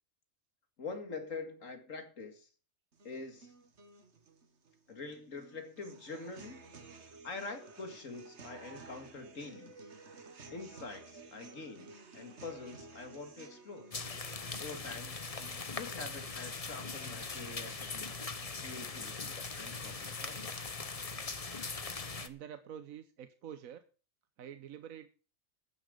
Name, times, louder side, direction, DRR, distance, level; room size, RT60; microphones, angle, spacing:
voice 1, 0.8-2.5 3.0-3.5 4.9-9.8 10.5-13.9 14.6-15.2 15.7-18.1 18.6-20.6, left 4 dB, 70° left, 2.4 m, -45 dB
sound 1, 2.9-18.9, right 3 dB, 55° right, 1.8 m, -55 dB
sound 2, 13.9-22.3, left 4 dB, 30° left, 0.9 m, -41 dB
voice 2, 22.2-23.8 24.4-25.1, right 9 dB, 80° right, 1.3 m, -47 dB
14.5 x 10.0 x 5.1 m
omnidirectional pair, 1.4 m